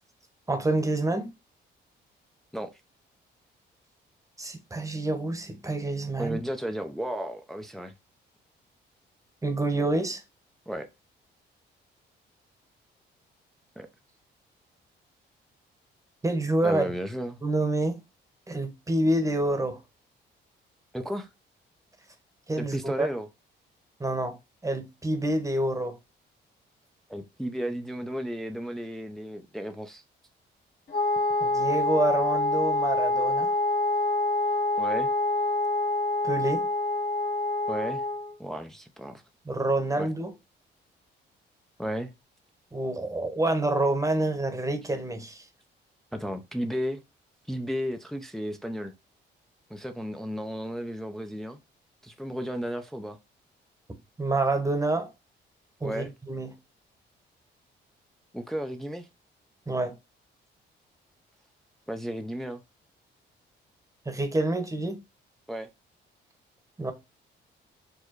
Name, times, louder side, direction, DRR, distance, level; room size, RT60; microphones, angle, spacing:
voice 1, 0.5-1.3 4.4-6.4 9.4-10.2 16.2-16.8 17.4-18.0 18.5-19.8 22.5-23.1 24.0-24.4 24.6-26.0 31.4-33.5 36.2-36.7 39.4-40.3 42.7-45.5 54.2-55.1 55.8-56.5 59.7-59.9 64.0-65.0 66.8-66.9, right 2 dB, 15° right, 1.0 m, -27 dB
voice 2, 6.2-7.9 10.7-10.9 13.8-13.9 16.6-17.4 20.9-21.3 22.6-23.3 27.1-30.0 34.8-35.1 37.7-38.0 38.4-39.2 40.0-40.1 41.8-42.1 46.1-47.0 47.5-48.9 49.7-51.6 52.0-53.2 55.8-56.1 58.3-59.1 61.9-62.6 65.5-65.7, equal, ahead, 0.5 m, -33 dB
Wind instrument woodwind instrument, 30.9-38.3, left 2 dB, 50° left, 1.1 m, -26 dB
4.6 x 2.2 x 4.5 m
cardioid pair, 90°, 20 cm